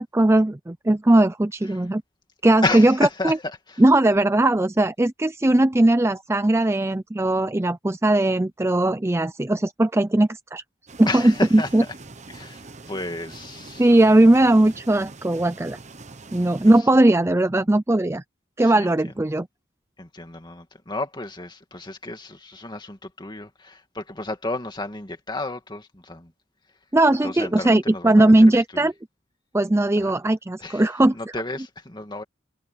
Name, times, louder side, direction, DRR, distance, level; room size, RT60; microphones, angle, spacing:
voice 1, 0.0-2.0 2.4-2.9 3.2-3.4 3.8-10.6 11.0-11.8 13.8-15.8 16.3-18.2 18.6-19.5 26.9-28.9 29.5-31.1, right 1 dB, 15° right, 0.5 m, -18 dB
voice 2, 2.6-3.8 11.1-11.9 12.3-14.0 18.6-19.1 20.0-26.3 27.2-28.9 30.0-30.2 30.6-32.2, left 2 dB, 25° left, 2.3 m, -32 dB
sound 1, 10.9-16.8, right 3 dB, 40° right, 1.1 m, -43 dB
head